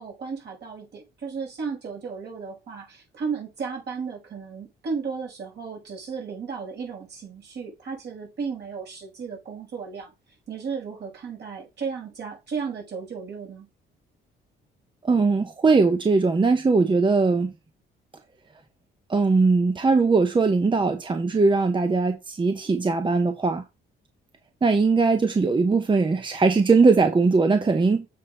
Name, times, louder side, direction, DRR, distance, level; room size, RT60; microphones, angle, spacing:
voice 1, 0.0-10.1 10.5-13.7, right 5 dB, 60° right, 5.6 m, -34 dB
voice 2, 15.0-17.5 19.1-23.6 24.6-28.1, right 4 dB, 25° right, 0.9 m, -20 dB
7.6 x 4.2 x 5.2 m
cardioid pair, 90°, 20 cm